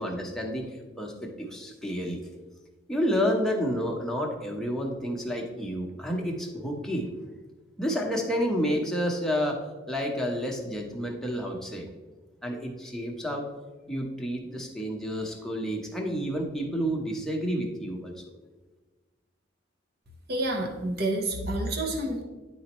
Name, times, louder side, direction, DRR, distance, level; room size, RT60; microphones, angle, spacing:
voice 1, 0.0-2.2 2.9-7.1 7.8-9.6 9.9-11.9 12.4-13.5 13.9-18.2, equal, 5° left, -1 dB, 1.0 m, -30 dB
voice 2, 20.3-22.2, right 1 dB, 55° right, 3 dB, 0.9 m, -29 dB
10.0 x 4.2 x 3.0 m, 1.3 s
head